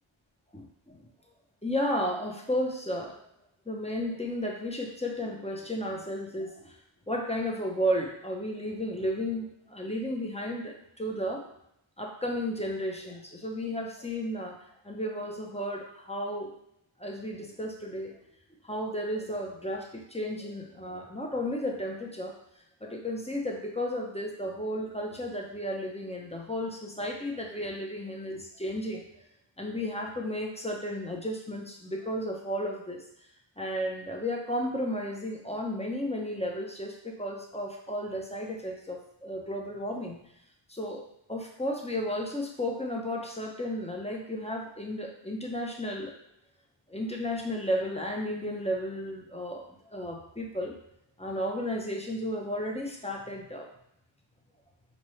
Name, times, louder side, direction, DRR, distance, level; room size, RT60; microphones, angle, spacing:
voice 1, 0.5-1.1 1.6-3.2 3.7-6.8 7.1-11.5 12.0-14.6 14.8-16.5 17.0-18.2 18.6-22.4 22.8-29.0 29.6-33.0 33.6-40.2 40.7-41.0 41.3-46.2 46.9-50.8 51.2-53.7, equal, 15° left, 0 dB, 0.7 m, -33 dB
5.3 x 2.2 x 3.1 m, 0.76 s
wide cardioid pair, 45°, 48 cm